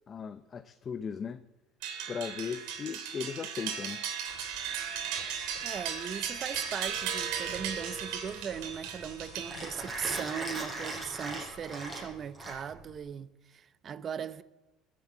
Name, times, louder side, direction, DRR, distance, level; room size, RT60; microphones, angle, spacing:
voice 1, 0.1-1.4 2.1-4.0, left 6 dB, 30° left, 0.6 m, -37 dB
sound 1, 1.8-10.0, right 8 dB, 80° right, 3.2 m, -36 dB
sound 2, 4.3-10.2, left 7 dB, 65° left, 3.1 m, -53 dB
voice 2, 5.6-14.4, right 8 dB, 35° right, 0.7 m, -38 dB
Mechanisms, 6.9-13.0, right 2 dB, 15° right, 6.3 m, -40 dB
21.0 x 7.9 x 8.8 m
cardioid pair, 130°, 0 cm